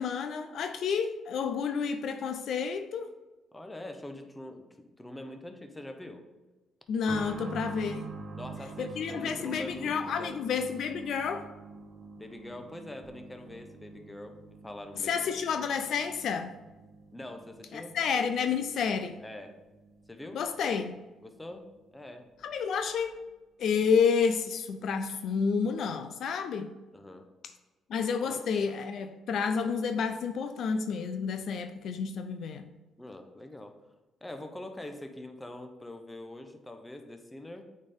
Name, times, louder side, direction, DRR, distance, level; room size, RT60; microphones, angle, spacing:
voice 1, 0.0-3.1 6.9-8.1 8.8-11.5 15.0-16.6 17.7-19.2 20.3-21.0 22.4-23.2 23.6-26.7 27.9-32.7, left 6 dB, 65° left, 8 dB, 0.4 m, -30 dB
voice 2, 3.5-6.2 8.3-10.4 12.2-15.4 17.1-18.0 19.2-19.6 20.1-20.4 21.2-22.3 26.9-27.3 28.3-28.5 33.0-33.7 34.2-37.6, left 1 dB, 10° left, 5 dB, 0.8 m, -44 dB
sound 1, 7.1-21.5 21.8-21.9 22.8-22.9, right 4 dB, 45° right, 0.9 m, -46 dB
8.5 x 4.3 x 3.6 m, 1.1 s
cardioid pair, 105°, 0 cm